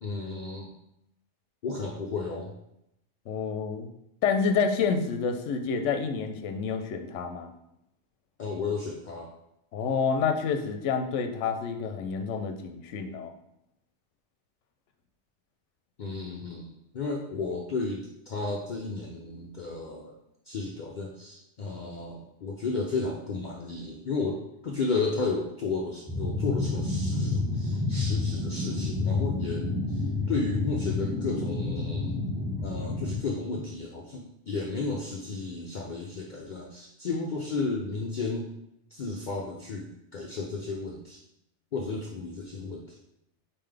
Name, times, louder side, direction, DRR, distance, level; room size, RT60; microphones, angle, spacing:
voice 1, 0.0-0.7 1.6-2.5 8.4-9.3 16.0-20.1 20.5-38.5 38.9-41.2 41.7-43.0, left 3 dB, 55° left, -1 dB, 0.5 m, -33 dB
voice 2, 3.3-3.9 4.2-7.5 9.7-13.3, left 5 dB, 80° left, 5 dB, 0.9 m, -28 dB
sound 1, 26.1-33.2, left 3 dB, 10° right, 0.4 m, -29 dB
4.2 x 3.8 x 3.3 m, 0.80 s
omnidirectional pair, 1.2 m